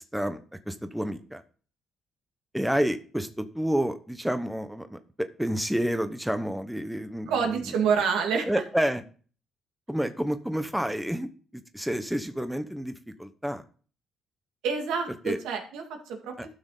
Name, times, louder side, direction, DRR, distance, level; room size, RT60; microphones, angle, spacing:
voice 1, 0.7-1.4 2.5-7.6 8.4-9.0 9.9-13.6 15.2-15.4 16.4-16.5, equal, 5° right, 9 dB, 0.9 m, -29 dB
voice 2, 7.3-8.5 14.6-16.3, right 6 dB, 85° right, 3 dB, 2.1 m, -27 dB
12.5 x 6.1 x 3.9 m, 0.41 s
cardioid pair, 85°, 0 cm